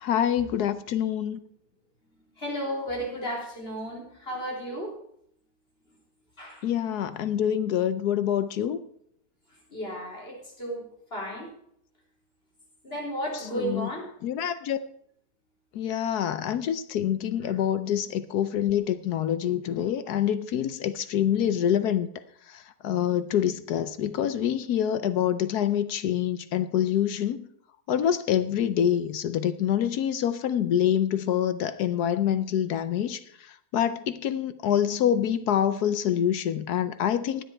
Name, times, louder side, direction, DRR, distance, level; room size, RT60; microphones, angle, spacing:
voice 1, 0.0-1.4 6.6-8.8 13.5-13.9 14.2-14.8 15.7-22.1 22.5-27.5 27.9-33.2 33.7-37.4, left 10 dB, 70° left, 13 dB, 1.2 m, -26 dB
voice 2, 2.1-5.0 6.4-6.7 9.7-10.8 11.1-11.5 12.8-14.1 17.4-17.6, equal, 35° left, -2 dB, 4.2 m, -34 dB
15.5 x 10.0 x 4.5 m, 0.69 s
omnidirectional pair, 1.9 m